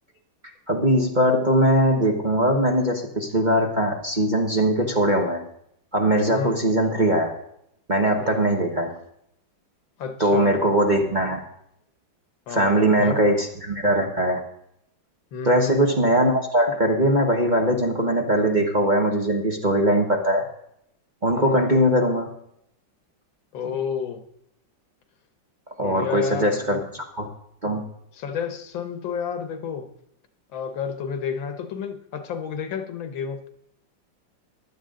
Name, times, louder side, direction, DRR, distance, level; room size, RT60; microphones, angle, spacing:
voice 1, 0.7-5.4 5.9-7.4 7.9-8.9 10.2-11.4 12.5-14.4 15.5-20.5 21.2-22.3 25.8-27.3 27.6-27.9, right 1 dB, 30° right, 2 dB, 1.2 m, -21 dB
voice 2, 10.0-11.2 12.5-13.2 15.3-15.8 21.3-21.6 23.5-24.2 25.8-26.8 28.2-29.9 30.5-33.5, left 6 dB, 75° left, 8 dB, 1.9 m, -31 dB
15.0 x 11.0 x 3.8 m, 0.74 s
omnidirectional pair, 2.1 m